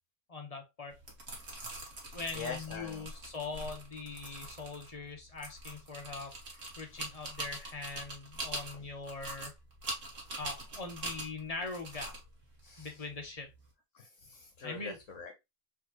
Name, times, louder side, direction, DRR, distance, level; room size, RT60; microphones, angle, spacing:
voice 1, 0.3-1.0 2.1-9.5 10.4-12.1 12.8-13.5 14.6-15.0, left 3 dB, 30° left, 1.1 m, -42 dB
sound 1, 0.9-13.7, right 2 dB, 60° right, 1.9 m, -44 dB
voice 2, 2.0-3.1 5.7-5.8 12.6-12.9 13.9-15.3, left 5 dB, 60° left, 1.3 m, -44 dB
4.3 x 3.7 x 3.0 m
omnidirectional pair, 1.5 m